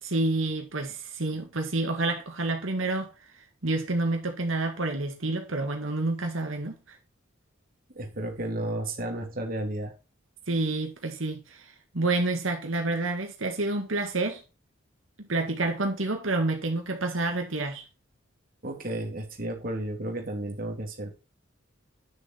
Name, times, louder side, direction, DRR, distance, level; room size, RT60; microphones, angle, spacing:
voice 1, 0.0-7.0 10.5-14.4 15.3-17.8, right 2 dB, 85° right, 1.9 m, -29 dB
voice 2, 7.9-9.9 18.6-21.2, right 1 dB, 45° right, 2.7 m, -33 dB
9.5 x 6.8 x 4.4 m
head